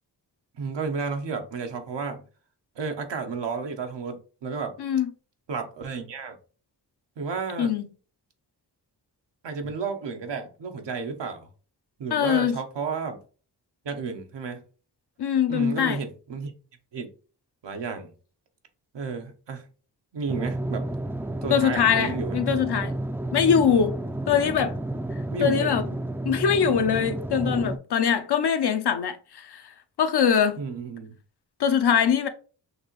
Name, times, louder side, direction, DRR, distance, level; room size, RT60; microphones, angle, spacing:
voice 1, 0.6-2.2 2.8-4.7 5.5-6.4 7.2-7.7 9.4-11.5 12.0-13.2 13.8-14.6 15.5-16.5 16.9-17.1 17.6-18.1 18.9-19.7 20.1-20.9 21.4-22.4 24.4-24.5 25.3-25.8 30.6-31.2, right 5 dB, 85° right, 1.0 m, -32 dB
voice 2, 4.8-5.1 7.6-7.9 12.1-12.6 15.2-16.0 21.5-22.9 23.3-23.9 24.3-24.8 25.4-25.9 26.2-29.6 30.0-30.6 31.6-32.3, left 7 dB, 70° left, 0.7 m, -22 dB
sound 1, 20.3-27.8, right 1 dB, 5° right, 0.4 m, -31 dB
6.4 x 2.5 x 3.1 m
cardioid pair, 65°, 41 cm